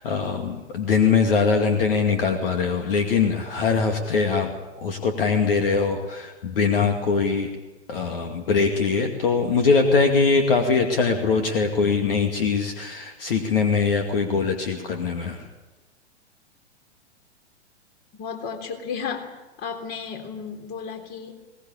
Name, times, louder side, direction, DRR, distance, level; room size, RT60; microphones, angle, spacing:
voice 1, 0.0-4.5 4.8-7.5 7.9-15.5, left 5 dB, 55° left, 5 dB, 2.4 m, -22 dB
voice 2, 18.1-21.4, left 6 dB, 30° left, 5 dB, 3.6 m, -34 dB
21.5 x 19.0 x 8.7 m, 1.1 s
figure-of-eight pair, 105°, 34 cm